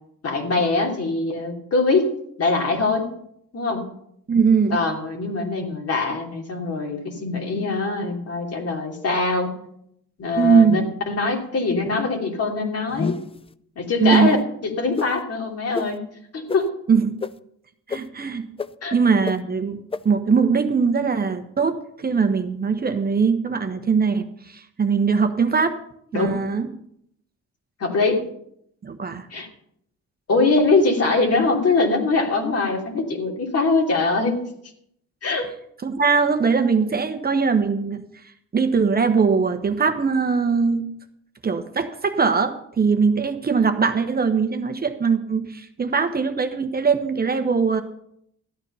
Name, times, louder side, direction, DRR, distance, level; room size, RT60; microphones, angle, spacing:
voice 1, 0.2-2.1 2.4-3.1 3.5-3.8 4.7-9.5 10.2-13.1 13.8-14.4 14.6-16.0 16.3-16.7 18.8-18.9 26.1-26.4 27.8-28.3 29.3-29.5 30.3-34.4 35.2-35.5, left 3 dB, 55° left, 2 dB, 2.9 m, -22 dB
voice 2, 4.3-4.8 10.4-10.8 14.0-14.3 16.9-17.1 17.9-18.5 18.9-19.8 20.0-25.7 26.1-26.7 28.8-29.3 35.8-38.0 38.5-40.9 41.4-47.8, right 5 dB, 30° right, 7 dB, 1.1 m, -21 dB
sound 1, 12.9-13.4 14.1-14.3 15.0-15.1 15.7-15.9 16.5-16.6 17.2-17.3 17.9-18.0 18.6-18.7 19.3-19.4 19.9-20.0, left 4 dB, 20° left, 0.5 m, -27 dB
13.5 x 9.1 x 5.6 m, 0.72 s
cardioid pair, 90°, 30 cm